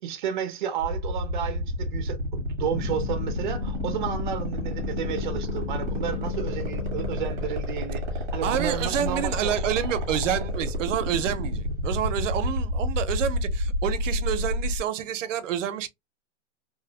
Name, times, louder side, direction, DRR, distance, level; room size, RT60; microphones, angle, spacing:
voice 1, 0.0-8.0 8.3-9.6, right 8 dB, 40° right, 0.5 m, -32 dB
sound 1, 0.8-14.8, equal, 20° right, 0.8 m, -29 dB
sound 2, 2.7-11.4, left 7 dB, 85° left, 0.5 m, -35 dB
voice 2, 8.4-15.9, right 10 dB, 85° right, 0.6 m, -28 dB
2.7 x 2.0 x 2.6 m
supercardioid pair, 180°, 36 cm